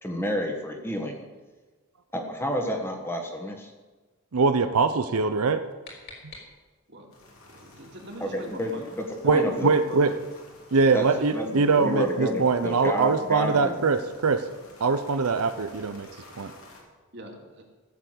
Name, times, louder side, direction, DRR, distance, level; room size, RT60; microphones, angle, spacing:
voice 1, 0.0-1.3 2.1-3.7 8.2-9.7 10.9-11.0 11.3-11.4 11.8-13.8, equal, 10° left, 2 dB, 1.4 m, -30 dB
voice 2, 4.3-5.6 6.2-6.3 9.2-10.1 10.7-14.4 14.8-16.1 16.4-16.5, right 4 dB, 85° right, 9 dB, 0.7 m, -23 dB
sound 1, 5.3-7.0, left 3 dB, 45° left, 3.4 m, -48 dB
sound 2, 7.1-16.8, left 2 dB, 75° left, 3.1 m, -52 dB
voice 3, 7.5-8.9 9.2-10.0 11.0-11.9 13.5-13.7 17.1-17.6, right 1 dB, 50° right, 1 dB, 2.4 m, -41 dB
15.0 x 6.9 x 8.0 m, 1.3 s
head